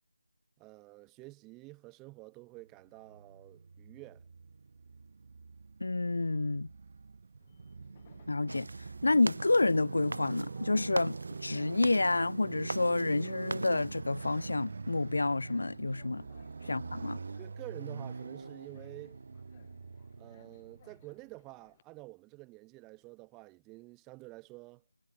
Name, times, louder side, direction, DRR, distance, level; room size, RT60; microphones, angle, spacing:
voice 1, 0.6-4.2 16.6-16.8 17.4-19.2 20.2-25.1, right 23 dB, 5° right, 1.6 m, -49 dB
Motorcycle, 3.0-21.1, right 4 dB, 30° right, 5.4 m, -44 dB
voice 2, 5.8-6.7 8.3-8.7 9.0-16.2 16.7-17.2, left 2 dB, 60° left, 1.1 m, -29 dB
Train, 7.4-21.8, left 10 dB, 15° left, 5.9 m, -65 dB
sound 1, 8.5-14.0, right 2 dB, 60° right, 6.1 m, -42 dB
figure-of-eight pair, 180°, 0 cm